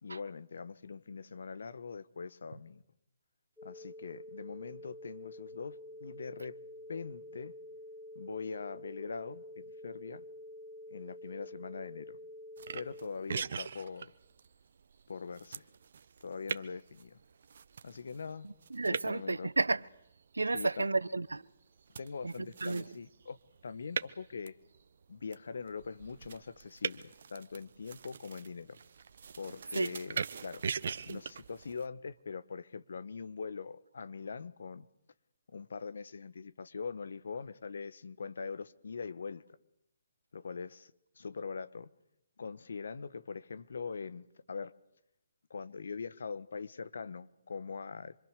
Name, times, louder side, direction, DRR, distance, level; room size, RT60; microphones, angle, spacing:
voice 1, 0.0-2.8 3.6-6.6 6.9-7.5 8.1-10.2 10.9-12.2 12.7-14.1 15.1-15.6 16.2-17.2 17.8-18.5 18.8-19.5 20.5-20.9 22.0-23.4 23.6-24.5 25.1-28.8 29.4-30.6 31.1-34.8 35.5-39.4 40.3-40.9 41.2-41.9 42.4-44.7 45.5-48.2, left 5 dB, 70° left, 1.4 m, -42 dB
sound 1, 3.6-13.1, left 1 dB, 5° left, 2.7 m, -49 dB
sound 2, 12.6-31.9, right 6 dB, 60° right, 1.2 m, -43 dB
voice 2, 18.4-19.8 20.3-21.4 22.2-22.3 22.6-22.8 29.7-29.9 31.1-31.2, right 3 dB, 85° right, 0.9 m, -32 dB
26.5 x 25.0 x 6.8 m
figure-of-eight pair, 140°, 0 cm